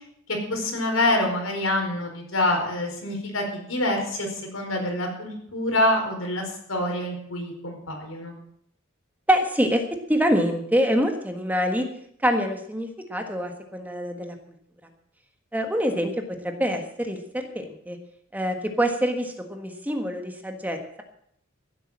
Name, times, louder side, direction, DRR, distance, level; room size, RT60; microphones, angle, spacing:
voice 1, 0.3-8.3, left 1 dB, 90° left, 2 dB, 4.7 m, -26 dB
voice 2, 9.3-9.8 10.1-11.9 12.2-14.4 15.5-16.1 16.4-18.0 18.3-21.0, equal, 10° right, 5 dB, 1.5 m, -25 dB
15.0 x 8.5 x 7.4 m, 0.70 s
head